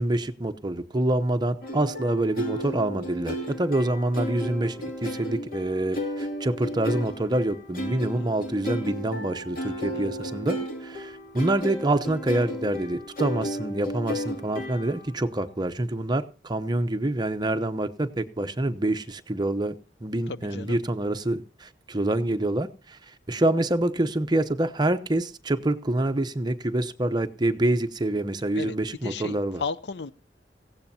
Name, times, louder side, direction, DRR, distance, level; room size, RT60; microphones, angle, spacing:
voice 1, 0.0-19.7 20.0-23.0 23.3-29.6, right 1 dB, 25° right, 0.9 m, -26 dB
sound 1, 1.6-15.2, equal, 55° left, 2.7 m, -34 dB
voice 2, 9.9-10.3 20.3-20.8 28.6-28.8 29.0-30.1, left 4 dB, 75° left, 0.6 m, -35 dB
18.0 x 16.0 x 2.8 m
head